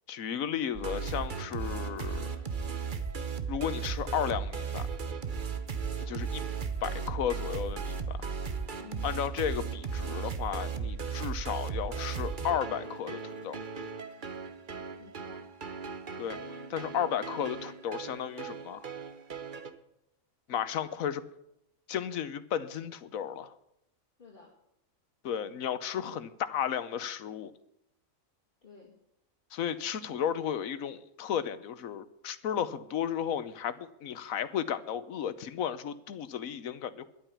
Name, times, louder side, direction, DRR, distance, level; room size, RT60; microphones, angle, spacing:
voice 1, 0.1-2.3 3.5-4.9 6.0-6.4 6.8-8.3 9.0-13.6 16.2-18.9 20.5-21.2 21.9-23.5 25.2-27.5 29.5-37.1, left 9 dB, 80° left, 14 dB, 1.3 m, -34 dB
sound 1, 0.7-19.7, right 5 dB, 40° right, 1.1 m, -36 dB
voice 2, 5.8-6.3 8.8-9.1 15.0-15.5 20.5-20.9 24.2-24.5 28.6-29.0, left 6 dB, 40° left, -2 dB, 2.5 m, -53 dB
12.0 x 8.9 x 8.5 m, 0.81 s
omnidirectional pair, 1.4 m